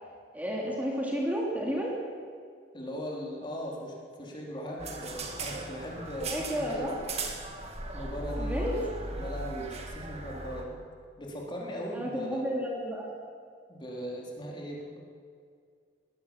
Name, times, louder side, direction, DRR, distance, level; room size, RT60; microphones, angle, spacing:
voice 1, 0.3-2.0 6.3-7.0 8.4-8.8 11.9-13.1, equal, 10° right, -3 dB, 3.1 m, -32 dB
voice 2, 2.7-7.0 7.9-10.8 11.2-12.4 13.7-15.0, equal, 25° left, -2 dB, 4.2 m, -39 dB
sound 1, 4.8-10.6, right 2 dB, 35° right, 2.4 m, -37 dB
22.5 x 17.5 x 7.4 m, 2.2 s
head